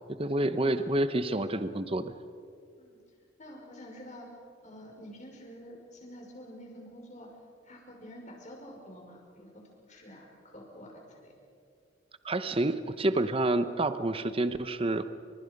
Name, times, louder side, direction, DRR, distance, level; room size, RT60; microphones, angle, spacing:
voice 1, 0.2-2.1 12.2-15.0, right 2 dB, 30° right, 11 dB, 0.9 m, -28 dB
voice 2, 3.4-4.3 4.6-7.3 7.6-11.4, equal, 35° left, 0 dB, 5.7 m, -48 dB
29.5 x 26.5 x 5.4 m, 2.4 s
head